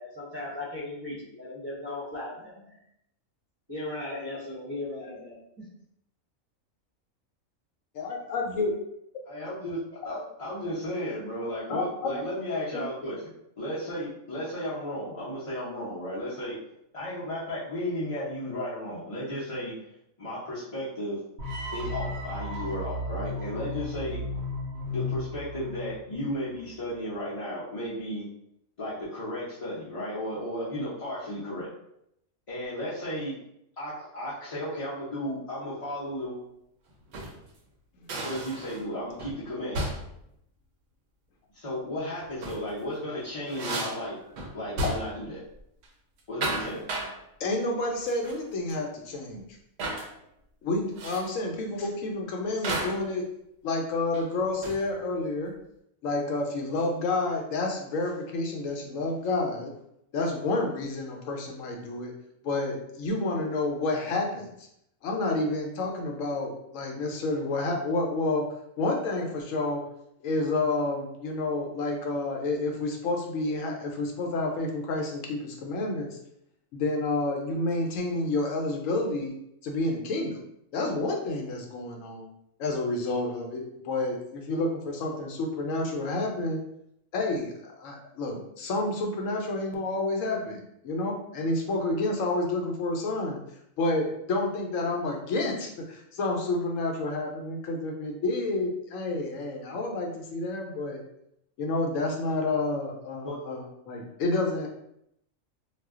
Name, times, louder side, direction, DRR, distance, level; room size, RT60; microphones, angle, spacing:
voice 1, 0.0-2.8 3.7-5.4, left 2 dB, 25° right, -9 dB, 0.6 m, -37 dB
voice 2, 7.9-8.7 11.7-12.2 12.7-12.8 38.0-38.2 47.4-49.4 50.6-53.2 53.6-55.5 56.0-59.7 60.1-62.1 62.4-64.7 65.0-68.5 68.8-69.8 70.2-76.2 76.7-79.3 79.6-80.4 80.7-82.3 82.6-86.6 87.1-93.4 93.8-101.0 101.6-104.7, left 2 dB, 75° left, 1 dB, 0.9 m, -29 dB
voice 3, 9.3-9.8 10.0-13.2 13.6-16.6 16.9-19.7 20.2-21.2 21.7-24.2 24.9-28.3 28.8-31.7 32.5-33.4 33.8-36.4 38.2-39.9 41.5-44.2 44.5-45.4 46.3-46.9 103.2-103.4, equal, 40° left, -10 dB, 0.5 m, -34 dB
sound 1, 21.4-26.5, left 2 dB, 85° right, 1.0 m, -34 dB
sound 2, 36.9-37.4 38.1-38.9 39.2-39.4 39.7-40.2 42.2-42.7 43.1-45.3 45.6-45.9 46.2-47.2 48.1-48.4 48.7-48.8 49.8-50.1 51.0-51.3 52.6-53.1 54.1-54.9, right 2 dB, 65° right, 0.7 m, -34 dB
2.4 x 2.1 x 3.5 m, 0.78 s
omnidirectional pair, 1.4 m